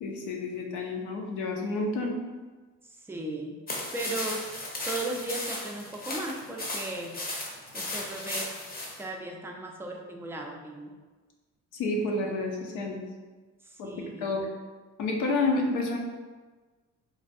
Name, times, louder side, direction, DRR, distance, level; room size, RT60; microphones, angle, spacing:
voice 1, 0.0-2.1 11.7-13.0 13.8-14.5 15.0-16.0, left 2 dB, 85° left, 1 dB, 0.6 m, -29 dB
voice 2, 2.9-3.6 3.9-4.4 4.8-7.1 7.7-8.5 9.0-10.9 13.6-14.4, right 2 dB, 10° right, 1 dB, 0.3 m, -36 dB
sound 1, 3.7-9.0, left 2 dB, 30° left, 0.7 m, -36 dB
3.2 x 2.2 x 2.5 m, 1.3 s
cardioid pair, 90°, 30 cm